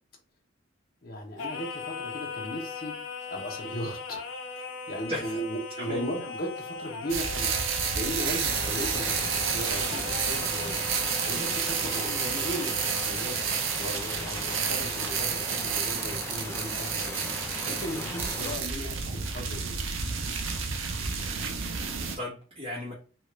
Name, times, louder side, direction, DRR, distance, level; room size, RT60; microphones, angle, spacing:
voice 1, 1.0-2.9 3.3-4.3 4.6-17.3 17.6-19.9, equal, 45° left, 0 dB, 0.9 m, -37 dB
Singing, 1.4-13.5, left 4 dB, 70° left, 0.6 m, -39 dB
voice 2, 5.1-5.4 5.8-6.1 18.4-18.5 21.8-22.9, left 1 dB, 30° right, -7 dB, 1.0 m, -36 dB
sound 1, 7.1-22.2, right 6 dB, 70° right, 0.5 m, -30 dB
sound 2, 8.4-18.6, left 1 dB, 10° left, 0.4 m, -38 dB
3.0 x 2.4 x 3.0 m, 0.37 s
head